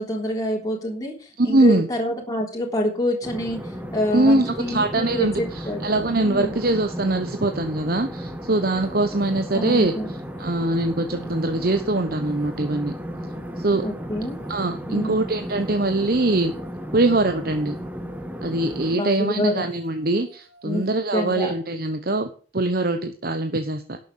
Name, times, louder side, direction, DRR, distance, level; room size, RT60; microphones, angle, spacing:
voice 1, 0.0-6.5 9.5-10.1 13.8-14.4 14.9-15.2 18.9-19.7 20.6-21.5, equal, 20° left, -1 dB, 3.6 m, -27 dB
voice 2, 1.4-1.9 4.1-9.9 10.4-12.9 13.6-13.8 14.5-16.5 16.9-17.8 18.4-24.0, right 2 dB, 50° right, 7 dB, 1.1 m, -22 dB
sound 1, 3.2-19.0, equal, 10° right, 1.3 m, -34 dB
sound 2, 8.5-21.0, right 3 dB, 80° right, 4.5 m, -54 dB
12.0 x 7.9 x 7.4 m, 0.39 s
head